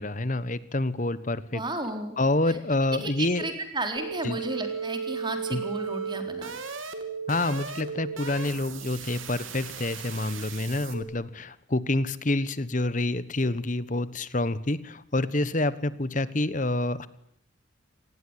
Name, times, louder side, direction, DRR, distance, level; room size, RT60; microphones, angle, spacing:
voice 1, 0.0-1.6 2.2-3.5 4.2-4.4 5.5-5.6 7.3-17.1, left 2 dB, 40° left, 16 dB, 1.2 m, -27 dB
voice 2, 1.5-2.2 2.5-2.6 3.0-6.6, right 2 dB, 25° right, 6 dB, 4.0 m, -33 dB
sound 1, 4.0-11.0, right 5 dB, 85° right, 3.4 m, -35 dB
26.0 x 19.5 x 9.9 m, 0.71 s
head